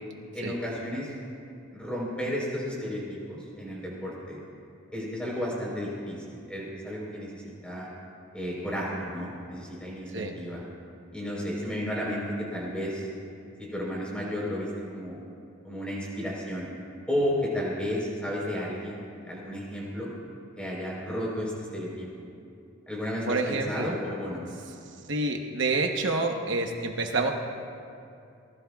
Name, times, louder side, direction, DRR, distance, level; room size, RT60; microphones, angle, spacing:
voice 1, 0.3-1.1 1.7-4.4 4.9-7.9 8.3-10.6 11.1-13.1 13.7-15.2 15.6-16.7 17.1-20.1 20.6-22.1 22.9-24.4, equal, 5° left, -4 dB, 4.0 m, -33 dB
voice 2, 23.3-23.9 25.1-27.3, right 3 dB, 60° right, 2 dB, 1.0 m, -28 dB
24.5 x 19.5 x 2.4 m, 2.6 s
head